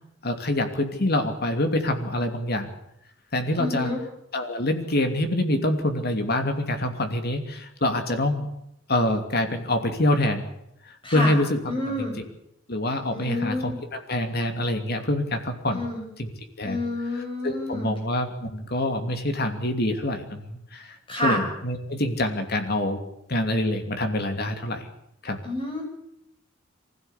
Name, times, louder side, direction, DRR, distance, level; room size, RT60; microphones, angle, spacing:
voice 1, 0.2-2.7 3.3-3.9 4.3-8.5 8.9-10.5 10.8-11.6 12.0-12.1 12.7-15.9 16.2-16.3 16.6-16.8 17.4-23.0 23.3-24.9 25.2-25.4, left 1 dB, 50° left, 6 dB, 2.8 m, -26 dB
voice 2, 3.6-4.0 11.0-11.3 11.7-12.2 13.1-13.8 15.7-16.0 16.7-17.9 21.1-21.4 25.4-25.8, left 1 dB, 25° left, 1 dB, 7.3 m, -28 dB
23.5 x 16.0 x 8.4 m, 0.78 s
head